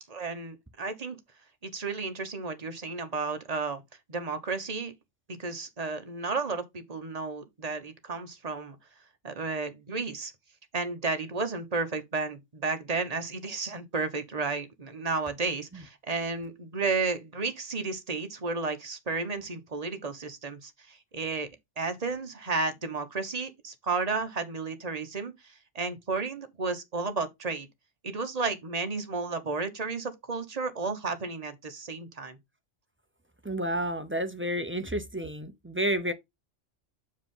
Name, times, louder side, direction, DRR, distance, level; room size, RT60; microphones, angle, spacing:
voice 1, 0.1-1.2 1.6-3.8 4.1-4.9 5.3-8.8 9.2-10.3 10.7-21.5 21.8-27.7 28.0-32.4, right 4 dB, 35° right, 1.1 m, -32 dB
voice 2, 33.4-36.1, right 1 dB, 15° right, 0.5 m, -30 dB
7.4 x 4.8 x 3.8 m
omnidirectional pair, 1.3 m